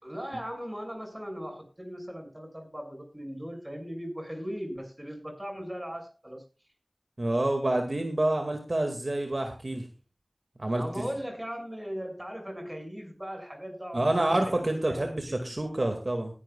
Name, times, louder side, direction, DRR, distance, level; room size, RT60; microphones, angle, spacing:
voice 1, 0.0-6.4 10.7-16.0, equal, 15° right, 3 dB, 6.0 m, -39 dB
voice 2, 7.2-9.9 10.6-11.1 13.9-16.3, right 1 dB, 60° right, 4 dB, 2.1 m, -28 dB
19.0 x 11.0 x 2.4 m, 0.32 s
wide cardioid pair, 45°, 0 cm